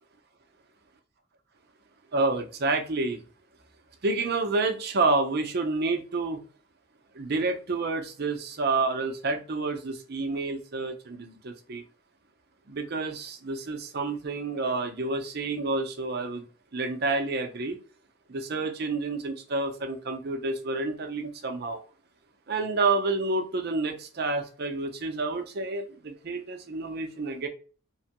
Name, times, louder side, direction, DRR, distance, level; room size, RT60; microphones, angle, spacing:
voice 1, 2.1-3.2 4.0-6.4 7.1-11.8 12.7-16.4 16.7-17.8 18.3-21.8 22.5-27.5, right 3 dB, 50° right, 0.6 m, -29 dB
3.0 x 2.1 x 2.9 m
head